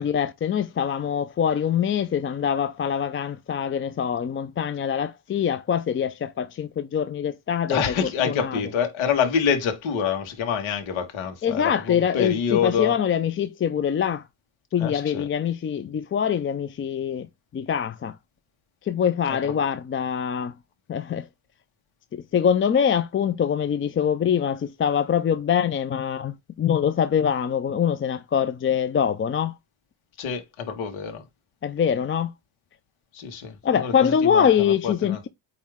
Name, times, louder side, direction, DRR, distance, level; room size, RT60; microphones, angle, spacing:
voice 1, 0.0-8.6 11.4-14.3 14.7-17.3 17.5-18.2 18.8-20.5 20.9-21.3 22.1-29.6 31.6-32.3 33.6-35.3, left 8 dB, 30° left, 0.4 m, -24 dB
voice 2, 7.7-13.0 14.8-15.3 19.3-19.4 30.2-31.2 33.1-33.6 33.8-33.9 34.3-35.3, left 7 dB, 80° left, 2.0 m, -26 dB
8.6 x 3.2 x 3.6 m
cardioid pair, 135°, 47 cm